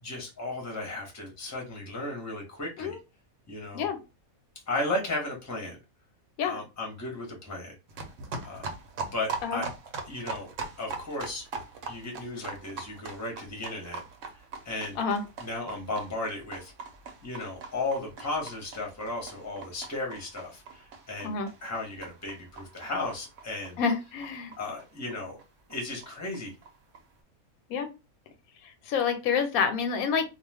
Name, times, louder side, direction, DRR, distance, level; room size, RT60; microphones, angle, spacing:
voice 1, 0.0-2.9 3.5-3.9 4.7-5.8 6.4-7.7 8.4-8.7 9.1-9.7 10.1-10.5 10.8-11.4 11.9-14.0 14.6-15.0 15.4-16.7 17.2-23.8 24.6-25.4 25.7-26.5, left 2 dB, 15° left, 0 dB, 0.7 m, -35 dB
sound 1, 7.9-25.1 25.4-25.5 25.7-25.8 26.0-26.1 26.3-27.0, right 4 dB, 65° right, 0.9 m, -42 dB
voice 2, 23.8-24.5 27.7-27.9 28.8-30.2, left 6 dB, 85° left, 7 dB, 1.1 m, -28 dB
2.4 x 2.3 x 3.3 m, 0.28 s
omnidirectional pair, 1.5 m